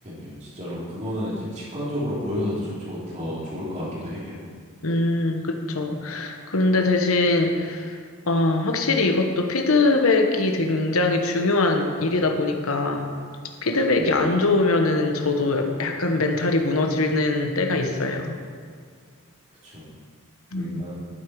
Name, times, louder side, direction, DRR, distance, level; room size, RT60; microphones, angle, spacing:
voice 1, 0.0-4.4 13.9-14.2 19.6-19.9 20.5-21.1, left 1 dB, 35° right, -7 dB, 3.2 m, -31 dB
voice 2, 4.8-8.0 8.3-13.1 13.6-18.4 20.5-20.8, left 2 dB, 70° left, 4 dB, 1.2 m, -22 dB
12.0 x 7.5 x 4.8 m, 2.1 s
head